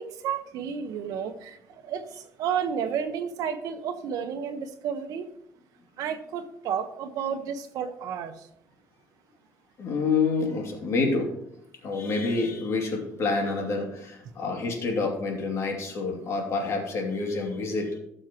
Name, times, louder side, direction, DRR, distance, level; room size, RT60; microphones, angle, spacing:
voice 1, 0.0-1.6 1.8-5.3 6.0-8.5, right 7 dB, 70° right, 7 dB, 1.2 m, -31 dB
voice 2, 9.8-11.3 11.8-18.0, left 4 dB, 50° left, 1 dB, 2.5 m, -28 dB
17.5 x 6.5 x 3.0 m, 0.76 s
cardioid pair, 140°, 6 cm